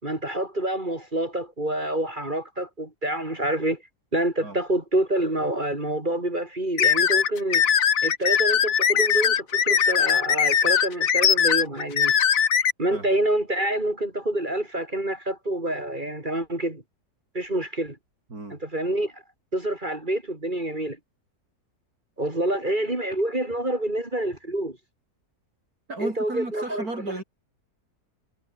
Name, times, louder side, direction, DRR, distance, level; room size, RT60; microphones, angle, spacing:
voice 1, 0.0-3.8 4.1-7.6 8.0-12.1 12.8-16.8 17.3-18.0 18.5-19.2 19.5-21.0 22.2-24.8 26.0-26.9, right 1 dB, 30° right, 3.7 m, -27 dB
sound 1, 6.8-12.7, left 8 dB, 60° left, 1.6 m, -20 dB
voice 2, 25.9-27.2, right 2 dB, 70° right, 5.8 m, -34 dB
omnidirectional pair, 1.7 m